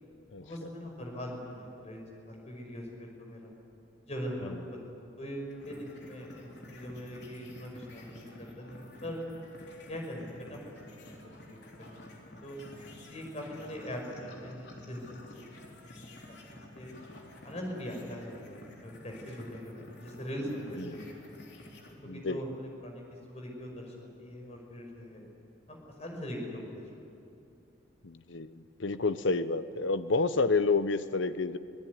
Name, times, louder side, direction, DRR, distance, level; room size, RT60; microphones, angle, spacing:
voice 1, 0.4-3.5 4.1-9.2 9.9-11.6 11.9-12.6 13.1-16.2 16.5-16.9 17.4-21.1 22.0-23.0 23.3-25.2 25.7-26.8, equal, 35° left, 0 dB, 5.6 m, -41 dB
sound 1, 5.5-21.9, left 1 dB, 60° left, 3.7 m, -51 dB
voice 2, 22.1-22.4 28.0-31.6, left 3 dB, 75° left, 12 dB, 0.8 m, -29 dB
25.5 x 17.5 x 9.6 m, 2.6 s
head